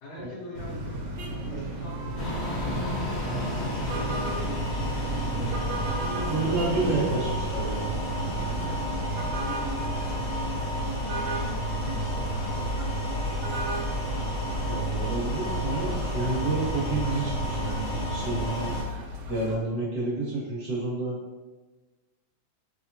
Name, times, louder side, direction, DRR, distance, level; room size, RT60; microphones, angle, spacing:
voice 1, 0.0-4.7 5.3-7.2 8.2-12.5, left 1 dB, 75° left, -5 dB, 1.5 m, -43 dB
sound 1, 0.5-19.6, equal, 80° right, 1.4 m, -36 dB
sound 2, 2.2-18.8, right 1 dB, 50° left, 0.9 m, -30 dB
voice 2, 6.3-7.9 13.3-13.4 14.7-18.7 19.3-21.2, right 2 dB, 40° right, -6 dB, 1.2 m, -30 dB
3.7 x 2.1 x 2.6 m, 1.2 s
omnidirectional pair, 2.3 m